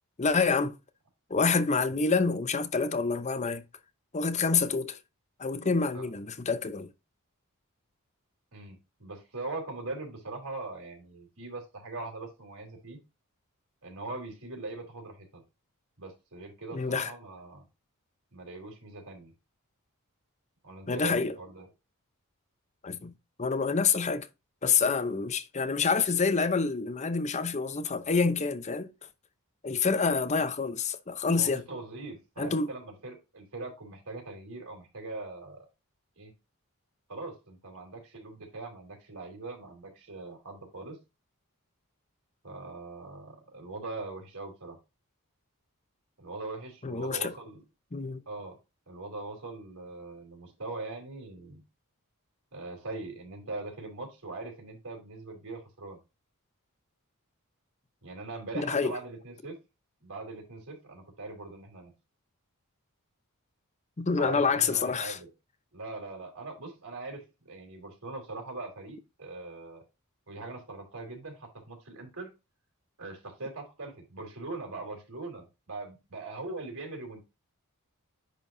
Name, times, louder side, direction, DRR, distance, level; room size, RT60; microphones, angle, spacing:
voice 1, 0.2-0.8 1.3-3.6 4.1-5.0 5.4-6.9 16.7-17.1 20.9-21.3 22.8-23.1 23.4-24.3 24.6-28.9 29.6-31.6 32.4-32.7 46.8-47.3 47.9-48.2 58.5-59.0 64.0-65.2, left 4 dB, 30° left, 0.7 m, -27 dB
voice 2, 8.5-13.0 13.8-15.4 16.0-17.6 18.3-19.3 20.6-21.7 31.4-35.7 36.2-36.3 37.1-41.0 42.4-44.8 46.2-47.6 48.3-48.6 48.9-51.6 52.5-56.0 58.0-59.6 60.0-61.9 64.2-65.3 65.7-69.8 70.3-72.3 73.0-77.3, right 3 dB, 65° right, 3.6 m, -41 dB
10.5 x 4.7 x 2.7 m
head